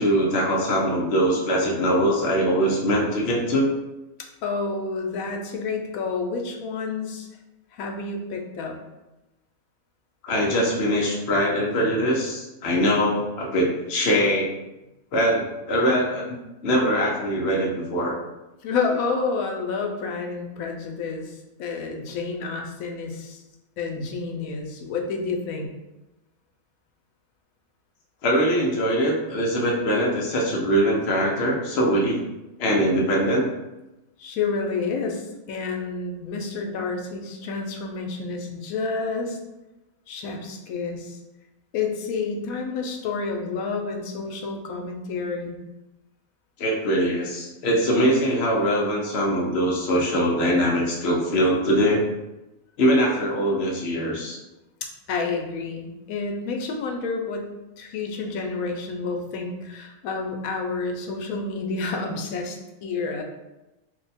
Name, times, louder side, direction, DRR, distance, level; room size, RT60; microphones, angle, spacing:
voice 1, 0.0-3.7 10.2-14.5 15.1-16.4 16.6-18.2 28.2-32.2 32.6-33.5 46.6-52.0 52.8-54.4, equal, 60° left, -2 dB, 0.7 m, -22 dB
voice 2, 4.4-7.3 7.7-8.8 18.6-23.4 23.8-25.7 34.2-39.4 40.1-41.2 41.7-45.6 54.8-57.5 57.8-63.2, left 4 dB, 85° left, 2 dB, 1.0 m, -29 dB
2.6 x 2.2 x 4.0 m, 1.0 s
omnidirectional pair, 1.4 m